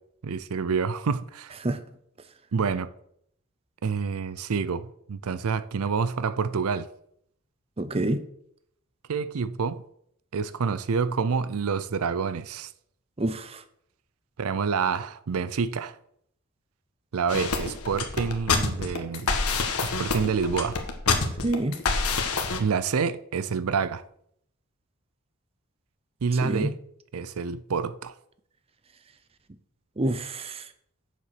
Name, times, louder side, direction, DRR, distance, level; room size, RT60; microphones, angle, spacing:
voice 1, 0.2-1.6 2.5-2.9 3.8-6.9 9.1-9.8 10.3-12.7 14.4-16.0 17.1-19.3 19.8-20.8 22.6-24.0 26.2-26.8 27.1-28.1, right 5 dB, 80° right, 0.5 m, -27 dB
voice 2, 7.8-8.2 13.2-13.6 21.4-21.8 26.4-26.7 30.0-30.6, right 1 dB, 25° right, 0.6 m, -27 dB
sound 1, 17.3-22.6, left 4 dB, 85° left, 1.5 m, -27 dB
7.4 x 6.9 x 6.8 m
head